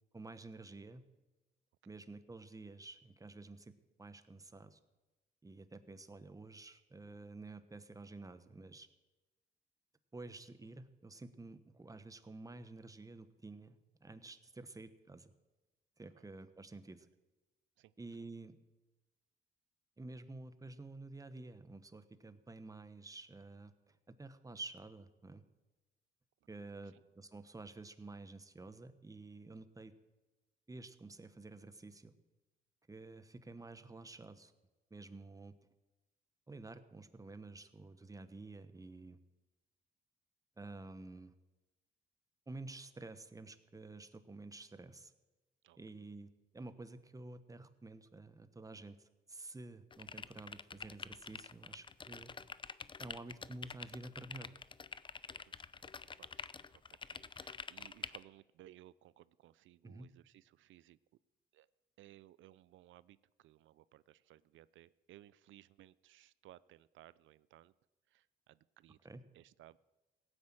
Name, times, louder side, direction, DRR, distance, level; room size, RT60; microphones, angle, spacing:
voice 1, 0.1-1.0 1.9-3.7 4.0-4.8 5.4-8.9 10.1-15.3 16.0-17.1 18.0-18.6 20.0-25.4 26.5-29.9 30.7-32.1 32.9-34.5 34.9-35.5 36.5-39.2 40.6-41.3 42.5-45.1 45.8-52.3 53.0-54.5 59.8-60.1 69.0-69.2, right 2 dB, 15° right, 11 dB, 1.2 m, -50 dB
sound 1, 49.9-58.2, left 5 dB, 25° left, 0.5 m, -47 dB
voice 2, 55.4-61.0 61.5-61.7 62.0-67.7 68.1-69.0 69.3-69.8, right 14 dB, 75° right, 19 dB, 0.5 m, -61 dB
17.0 x 9.7 x 7.6 m, 1.1 s
cardioid pair, 90°, 20 cm